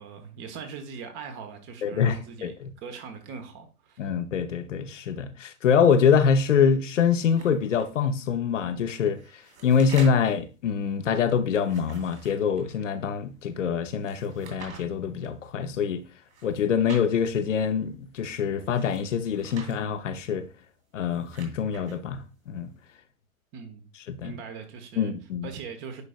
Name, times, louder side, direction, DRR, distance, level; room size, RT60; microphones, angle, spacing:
voice 1, 0.0-4.1 23.5-23.8 24.2-25.1 25.4-26.0, right 6 dB, 25° right, 1.1 m, -41 dB
voice 2, 1.8-2.7 4.0-16.0 16.4-20.5 20.9-22.7 24.1-24.3 25.0-25.5, left 7 dB, 60° left, 0.8 m, -25 dB
sound 1, 7.4-7.9 9.0-10.4 11.5-12.8 14.0-14.8 16.2-17.1 18.6-19.8 20.9-22.0, right 4 dB, 50° right, 2.6 m, -46 dB
9.6 x 5.0 x 2.4 m
figure-of-eight pair, 105°, 43 cm